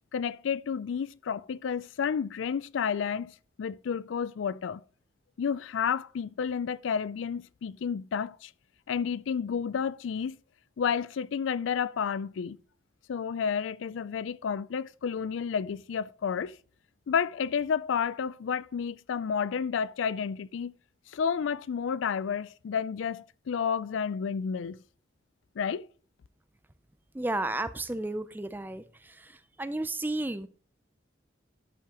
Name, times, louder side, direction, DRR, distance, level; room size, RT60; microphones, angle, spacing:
voice 1, 0.1-4.8 5.4-8.5 8.9-10.4 10.8-12.6 13.1-16.6 17.1-20.7 21.1-24.8 25.6-25.9, left 7 dB, 80° left, 0.4 m, -31 dB
voice 2, 27.1-28.8 29.2-29.3 29.6-30.5, right 2 dB, 10° right, 0.4 m, -32 dB
12.0 x 5.9 x 2.9 m
head